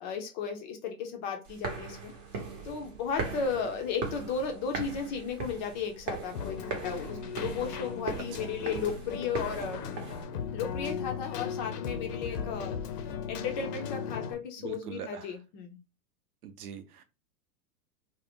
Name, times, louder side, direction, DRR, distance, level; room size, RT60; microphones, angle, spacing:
voice 1, 0.0-2.1 2.6-9.8 10.5-12.8 13.3-15.8, left 6 dB, 30° left, 0.5 m, -35 dB
sound 1, 1.5-10.2, right 4 dB, 35° right, 0.8 m, -39 dB
Keyboard (musical), 6.3-14.3, left 7 dB, 75° left, 0.7 m, -37 dB
voice 2, 14.6-15.3 16.4-17.0, right 8 dB, 70° right, 0.7 m, -43 dB
2.5 x 2.1 x 3.5 m
hypercardioid pair, 115°, 48 cm